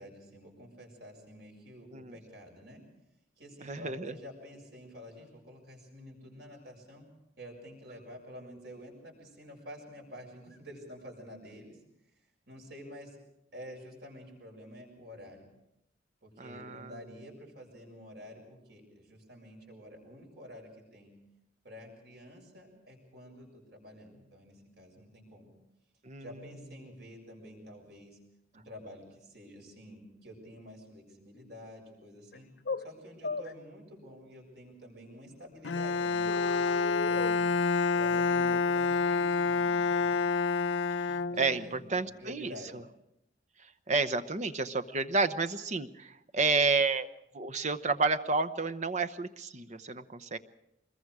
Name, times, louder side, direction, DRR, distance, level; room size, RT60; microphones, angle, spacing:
voice 1, 0.0-2.8 3.4-7.1 7.4-11.8 12.5-13.2 13.5-15.5 16.2-21.1 21.6-25.5 26.2-28.2 28.5-32.5 32.8-37.5 37.9-40.1 41.3-42.8, equal, 60° right, 1 dB, 7.0 m, -49 dB
voice 2, 3.6-4.1 16.4-16.9 26.0-26.2 41.4-42.5 43.9-47.1 47.3-50.4, right 4 dB, 40° right, 10 dB, 0.9 m, -30 dB
sound 1, 32.3-32.4 32.7-32.9 33.2-33.5 36.3-37.3, left 4 dB, 60° left, 1.0 m, -36 dB
Bowed string instrument, 35.6-41.8, left 4 dB, 75° left, 0.7 m, -28 dB
25.0 x 21.5 x 4.9 m, 0.86 s
head